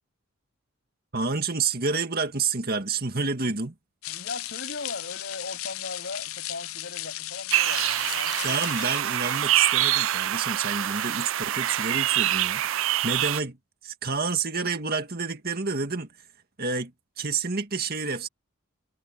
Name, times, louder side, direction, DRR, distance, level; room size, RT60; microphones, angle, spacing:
voice 1, 1.1-3.7 8.4-13.6 13.8-16.1 16.6-16.9 17.2-18.3, right 4 dB, 45° right, 2.0 m, -29 dB
sound 1, 4.0-9.2, left 15 dB, 75° left, 0.6 m, -36 dB
voice 2, 4.1-8.6, left 3 dB, 55° left, 7.9 m, -38 dB
sound 2, 7.5-13.4, right 13 dB, 65° right, 0.5 m, -25 dB
head